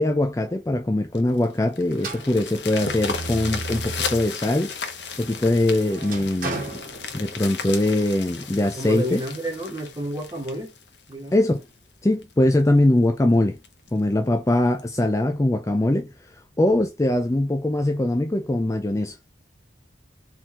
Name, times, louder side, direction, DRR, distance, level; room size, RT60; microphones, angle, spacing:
voice 1, 0.0-4.7 5.2-6.8 7.1-9.2 11.3-11.6 12.0-13.6 13.9-19.2, left 1 dB, 15° left, 0.4 m, -22 dB
sound 1, 1.2-11.6 12.2-12.3 12.7-12.8 13.2-13.3 13.6-13.9 14.8-14.9, left 5 dB, 70° left, 1.1 m, -35 dB
sound 2, 2.0-4.4 4.8-7.7, right 2 dB, 45° right, 2.3 m, -35 dB
voice 2, 8.8-10.8 11.1-11.4, right 1 dB, 20° right, 1.8 m, -30 dB
4.4 x 3.9 x 2.8 m
head